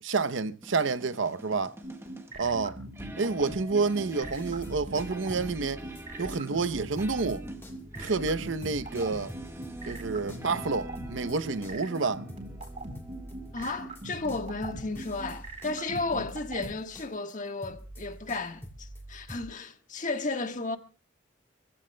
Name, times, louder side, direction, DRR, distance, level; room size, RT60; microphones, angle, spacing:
voice 1, 0.0-1.8 2.4-2.8 3.2-5.8 6.2-7.4 8.0-9.3 9.9-12.2, right 4 dB, 75° right, 0.7 m, -29 dB
sound 1, 0.6-14.1, right 1 dB, 15° right, 1.4 m, -45 dB
sound 2, 1.8-16.7, right 2 dB, 40° right, 3.9 m, -41 dB
sound 3, 4.3-6.7 7.0-19.4, right 1 dB, 15° left, 2.6 m, -46 dB
voice 2, 13.5-20.8, left 3 dB, 40° left, 1.4 m, -33 dB
28.5 x 15.5 x 2.2 m
head